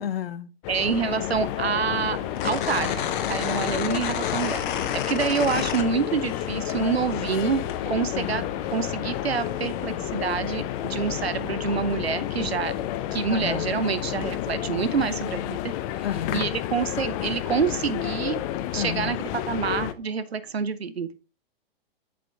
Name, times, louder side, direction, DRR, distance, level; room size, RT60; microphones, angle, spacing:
voice 1, 0.0-0.5 8.1-8.5 13.3-13.7 16.0-16.6 18.8-19.2, left 9 dB, 75° left, 0.7 m, -32 dB
sound 1, 0.6-19.9, left 12 dB, 35° left, 0.6 m, -30 dB
voice 2, 0.7-8.4 8.7-12.7 13.1-15.7 16.3-18.4 18.7-21.1, right 6 dB, 90° right, 0.7 m, -27 dB
gates-of-heaven, 1.0-20.6, right 8 dB, 60° right, 1.3 m, -51 dB
sound 2, 2.4-6.4 6.7-7.8, left 9 dB, 55° left, 1.0 m, -30 dB
7.7 x 5.1 x 3.3 m
figure-of-eight pair, 105°, 30 cm